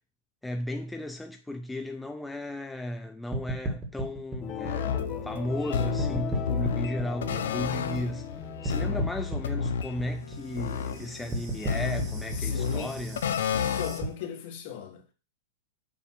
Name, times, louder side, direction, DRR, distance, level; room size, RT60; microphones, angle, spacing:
voice 1, 0.4-8.3 8.6-13.2, left 1 dB, 5° left, 0.4 m, -35 dB
sound 1, 3.3-5.7 6.0-8.3 8.6-14.0, right 2 dB, 20° right, 1.5 m, -35 dB
sound 2, 4.4-9.5, left 8 dB, 30° left, 0.9 m, -38 dB
sound 3, 4.6-14.2, left 6 dB, 85° left, 0.6 m, -31 dB
voice 2, 12.3-12.9 13.8-15.0, left 8 dB, 55° left, 1.5 m, -37 dB
7.0 x 2.7 x 5.6 m
supercardioid pair, 150°, 0 cm